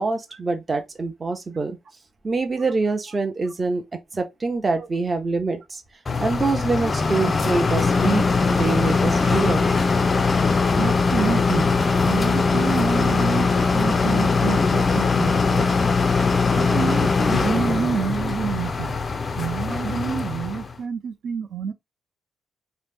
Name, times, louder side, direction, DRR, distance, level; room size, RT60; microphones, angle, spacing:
voice 1, 0.0-1.8 2.2-3.8 4.1-5.8 6.2-9.7, right 3 dB, 25° right, 0.7 m, -25 dB
sound 1, 6.1-20.7, left 4 dB, 30° left, 0.3 m, -21 dB
voice 2, 10.8-11.7 12.1-15.8 16.5-19.0 19.4-21.7, right 6 dB, 65° right, 0.6 m, -28 dB
2.9 x 2.0 x 3.3 m
cardioid pair, 120°, 0 cm